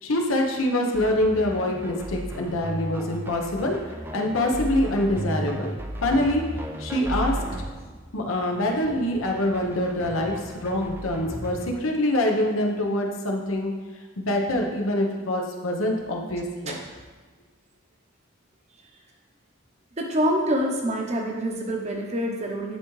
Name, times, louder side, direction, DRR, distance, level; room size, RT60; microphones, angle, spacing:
voice 1, 0.0-3.8 4.1-5.7 6.0-6.4 6.8-7.4 8.1-13.7 14.2-16.8, left 1 dB, 75° left, 1 dB, 0.9 m, -25 dB
sound 1, 0.9-11.8, right 1 dB, 10° right, 0.3 m, -35 dB
voice 2, 20.0-22.8, equal, 30° right, 1 dB, 0.8 m, -26 dB
11.0 x 3.6 x 3.2 m, 1.4 s
head